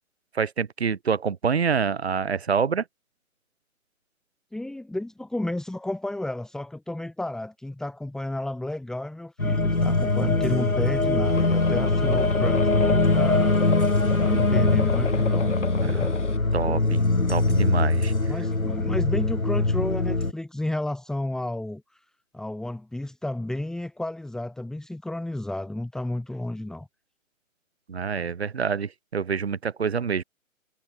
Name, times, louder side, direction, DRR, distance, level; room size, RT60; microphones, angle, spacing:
voice 1, 0.3-2.8 15.8-16.2 16.5-17.0 17.3-18.1 27.9-30.2, right 6 dB, 50° right, 3.0 m, -26 dB
voice 2, 4.5-13.6 14.2-16.1 18.3-22.0 22.3-26.9, left 1 dB, ahead, 6.0 m, -32 dB
sound 1, 9.4-20.3, left 2 dB, 75° left, 5.6 m, -22 dB
sound 2, 11.2-16.4, left 5 dB, 55° left, 3.3 m, -35 dB
figure-of-eight pair, 140°, 42 cm